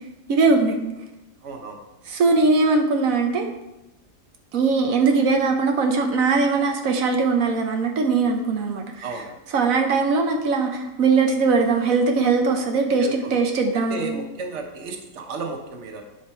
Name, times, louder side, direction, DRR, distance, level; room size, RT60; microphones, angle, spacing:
voice 1, 0.3-0.8 2.1-3.5 4.5-9.0 9.5-14.0, right 4 dB, 85° right, 3 dB, 1.3 m, -20 dB
voice 2, 1.4-1.8 9.0-9.4 13.0-13.3 13.9-16.0, right 3 dB, 60° right, 4 dB, 1.3 m, -33 dB
10.5 x 5.2 x 4.4 m, 0.96 s
omnidirectional pair, 1.4 m